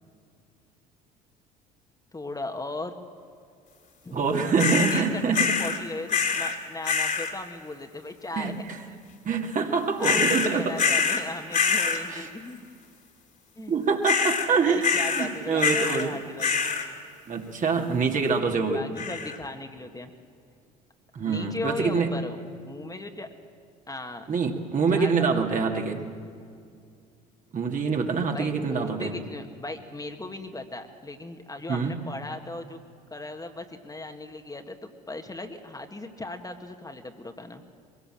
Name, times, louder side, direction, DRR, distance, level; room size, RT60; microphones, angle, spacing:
voice 1, 2.1-3.0 4.0-4.2 4.7-9.0 10.0-12.6 13.6-13.7 14.6-16.5 18.7-20.1 21.3-22.4 22.7-23.3 23.9-24.3 24.9-25.9 28.3-32.8 33.1-37.6, left 2 dB, 20° left, 5 dB, 1.7 m, -37 dB
voice 2, 4.1-5.5 8.4-8.8 9.2-10.7 12.1-12.3 13.7-16.2 17.3-19.0 21.1-22.1 24.3-26.0 27.5-29.1 31.7-32.0, right 5 dB, 40° right, 3 dB, 2.3 m, -25 dB
sound 1, 4.6-5.0 5.3-5.8 6.1-6.6 6.8-7.3 10.0-11.2 11.5-12.0 14.0-14.5 14.8-15.3 15.6-16.1 16.4-16.9 19.0-19.4, left 5 dB, 45° left, 2.8 m, -25 dB
22.5 x 17.0 x 7.6 m, 2.3 s
hypercardioid pair, 65°, 20 cm